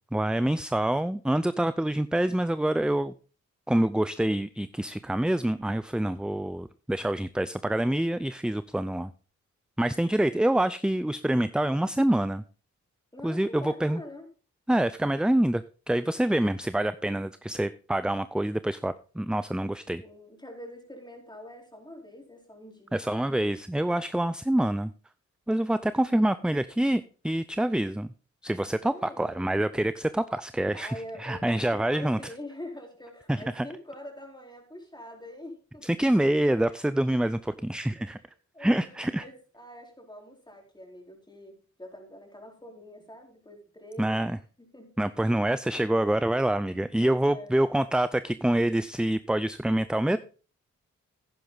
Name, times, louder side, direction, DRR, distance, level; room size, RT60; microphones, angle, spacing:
voice 1, 0.1-3.1 3.7-9.1 9.8-12.4 13.2-14.0 14.7-20.0 22.9-24.9 25.5-28.1 28.4-32.2 33.3-33.7 35.8-38.2 38.6-39.2 44.0-44.4 45.0-50.2, right 1 dB, 5° right, 14 dB, 0.5 m, -26 dB
voice 2, 13.1-14.3 20.0-23.1 28.6-29.5 30.7-35.9 37.9-38.3 38.5-44.3 44.6-44.9 47.0-47.6, left 1 dB, 15° left, 1 dB, 4.4 m, -44 dB
10.5 x 10.0 x 3.9 m, 0.37 s
cardioid pair, 55°, 30 cm